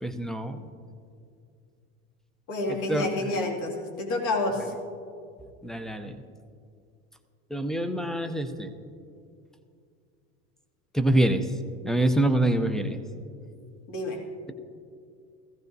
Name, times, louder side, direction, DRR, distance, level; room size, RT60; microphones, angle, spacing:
voice 1, 0.0-0.6 2.9-3.3 5.6-6.2 7.5-8.7 10.9-11.4 11.8-13.0, right 1 dB, ahead, 9 dB, 0.5 m, -25 dB
voice 2, 2.5-4.7 13.9-14.2, left 2 dB, 60° left, 0 dB, 2.4 m, -29 dB
17.0 x 15.0 x 2.7 m, 2.4 s
supercardioid pair, 120°, 38 cm